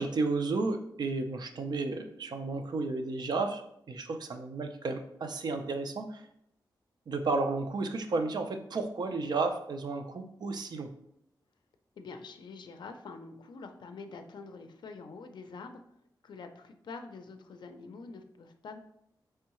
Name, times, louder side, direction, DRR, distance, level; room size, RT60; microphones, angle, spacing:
voice 1, 0.0-3.6 3.9-6.2 7.1-10.9, right 3 dB, 60° right, 6 dB, 0.5 m, -32 dB
voice 2, 12.0-15.8 16.2-18.8, left 4 dB, 70° left, 6 dB, 0.4 m, -46 dB
4.5 x 3.3 x 3.0 m, 0.73 s
wide cardioid pair, 110°, 8 cm